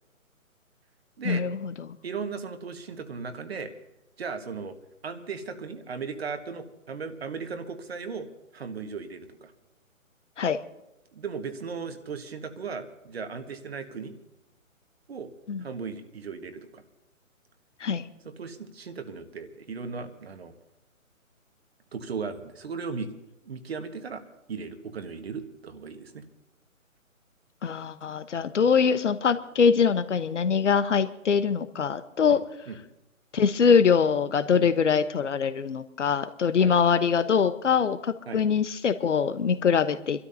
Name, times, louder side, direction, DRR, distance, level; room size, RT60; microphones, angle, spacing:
voice 1, 1.2-1.9 10.4-10.6 15.5-15.6 17.8-18.0 27.6-32.4 33.3-40.3, left 6 dB, 60° left, 12 dB, 1.1 m, -23 dB
voice 2, 2.0-3.7 4.2-4.8 5.0-8.3 8.5-9.5 11.1-14.2 15.1-15.3 15.6-16.8 18.2-20.5 21.9-23.1 23.4-24.2 24.5-26.2 32.3-32.4 32.7-32.8 34.6-34.7 36.6-36.8 38.3-38.4, right 5 dB, 45° right, 8 dB, 1.5 m, -36 dB
30.0 x 13.0 x 2.8 m, 0.91 s
figure-of-eight pair, 150°, 41 cm